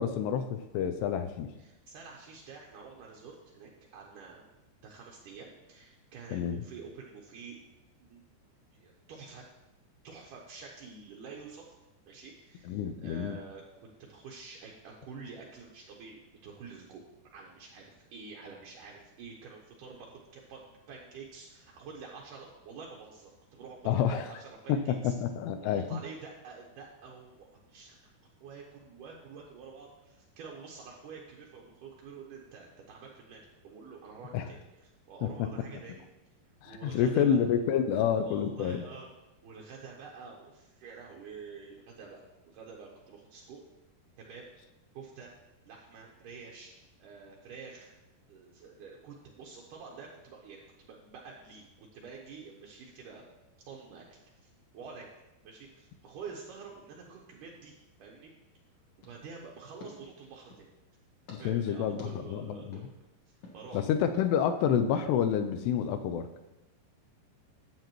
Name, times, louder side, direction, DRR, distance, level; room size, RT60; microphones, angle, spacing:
voice 1, 0.0-1.5 6.3-6.6 12.7-13.4 23.9-24.3 24.7-26.0 34.3-34.5 35.2-35.5 36.6-38.8 61.3-62.8 63.7-66.3, left 8 dB, 85° left, 8 dB, 2.6 m, -29 dB
voice 2, 1.6-4.4 4.8-7.6 8.1-8.2 8.7-9.5 10.0-11.8 12.1-17.0 17.3-25.1 25.6-28.0 28.2-36.1 36.7-37.5 37.9-39.1 39.4-43.6 44.2-44.5 44.9-45.3 45.6-46.7 47.0-47.9 48.3-53.3 53.7-54.0 54.4-58.3 59.0-60.7 61.4-62.9 63.3-63.8, right 5 dB, 80° right, -2 dB, 1.9 m, -48 dB
sound 1, 59.0-60.7 61.3-61.4 62.0-62.1 62.7-62.9 63.4-63.6 64.1-64.3, left 2 dB, 65° left, 1.3 m, -51 dB
12.0 x 8.2 x 3.0 m, 0.98 s
omnidirectional pair, 4.9 m